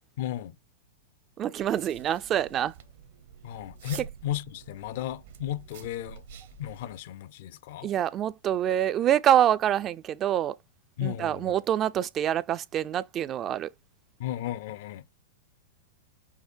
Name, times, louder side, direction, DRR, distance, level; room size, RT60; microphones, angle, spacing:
voice 1, 0.2-0.6 3.4-6.2 6.6-7.9 11.0-11.5 14.2-15.0, left 12 dB, 60° left, 0.5 m, -34 dB
voice 2, 1.4-2.7 7.8-10.5 11.0-13.7, right 10 dB, 30° right, 0.3 m, -26 dB
sound 1, 1.6-7.0, right 7 dB, 70° right, 0.9 m, -48 dB
5.6 x 2.1 x 4.4 m
hypercardioid pair, 120°, 0 cm